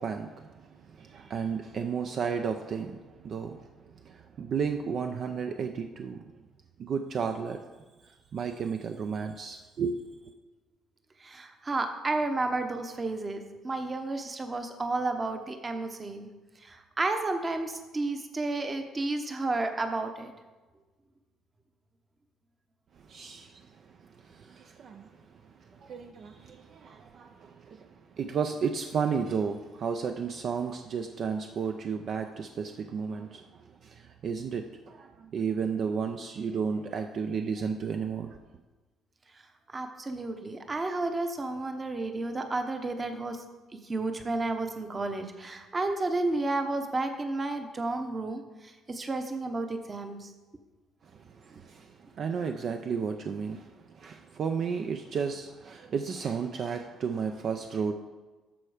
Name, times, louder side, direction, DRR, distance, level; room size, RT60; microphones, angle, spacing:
voice 1, 0.0-6.4 6.8-7.6 8.0-10.0 22.9-38.4 51.0-57.9, right 6 dB, 50° right, 5 dB, 0.5 m, -33 dB
voice 2, 11.2-16.3 16.6-20.3 39.7-43.4 43.8-50.3, right 2 dB, 25° right, 6 dB, 1.0 m, -32 dB
13.5 x 4.5 x 5.0 m, 1.2 s
cardioid pair, 125°, 0 cm